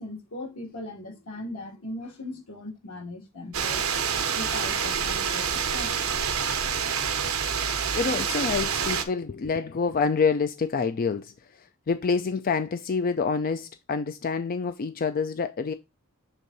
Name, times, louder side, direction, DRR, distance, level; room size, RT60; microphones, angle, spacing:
voice 1, 0.0-3.8 4.3-5.9, left 2 dB, 85° left, 2.5 m, -38 dB
sound 1, 3.5-9.0, right 7 dB, 70° right, 1.0 m, -27 dB
voice 2, 8.0-15.7, left 5 dB, 40° left, 0.4 m, -27 dB
7.0 x 3.7 x 3.9 m
head